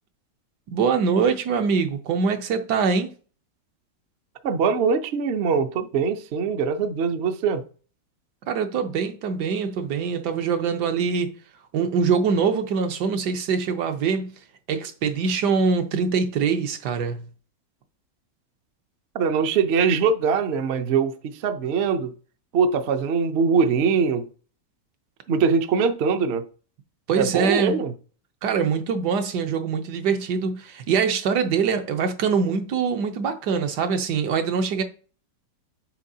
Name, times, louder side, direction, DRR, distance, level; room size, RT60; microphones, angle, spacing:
voice 1, 0.7-3.1 8.5-11.3 11.7-14.3 14.7-17.3 27.1-27.8 28.4-34.8, right 5 dB, 75° right, 1.4 m, -23 dB
voice 2, 4.4-7.6 19.1-22.1 22.5-24.3 25.3-26.4 27.2-27.9, right 5 dB, 60° right, 0.7 m, -22 dB
7.4 x 5.9 x 2.7 m
omnidirectional pair, 1.9 m